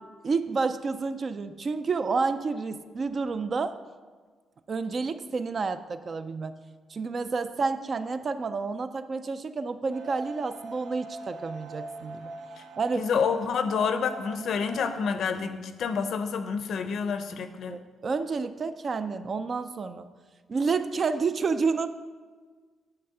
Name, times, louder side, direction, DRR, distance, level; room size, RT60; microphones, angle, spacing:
voice 1, 0.2-3.7 4.7-6.5 6.9-12.3 12.8-13.1 17.7-20.1 20.5-21.9, right 4 dB, 30° right, 10 dB, 0.3 m, -29 dB
sound 1, 9.9-15.0, right 2 dB, 75° right, 0.6 m, -42 dB
voice 2, 13.0-17.8, left 6 dB, 55° left, 9 dB, 0.6 m, -28 dB
9.8 x 3.4 x 6.8 m, 1.4 s
cardioid pair, 170°, 0 cm